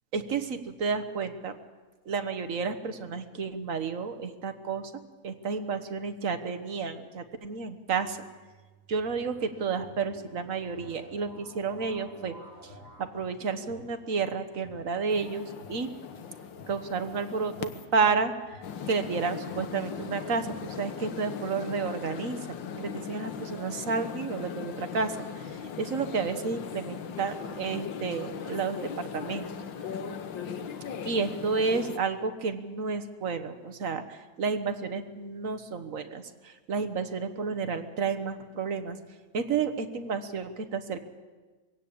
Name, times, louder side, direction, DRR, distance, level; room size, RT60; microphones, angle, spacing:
voice 1, 0.1-1.6 2.0-4.9 5.2-8.3 8.9-12.3 12.6-15.9 16.7-29.5 31.0-39.0 39.3-41.0, right 5 dB, 45° right, 9 dB, 1.4 m, -31 dB
sound 1, 7.9-13.2, right 1 dB, 10° left, 4.4 m, -53 dB
sound 2, 9.0-20.9, left 1 dB, 25° right, 3.4 m, -54 dB
sound 3, 15.1-17.9 18.6-32.0, left 7 dB, 65° left, 1.8 m, -39 dB
22.5 x 17.0 x 8.5 m, 1.3 s
omnidirectional pair, 2.3 m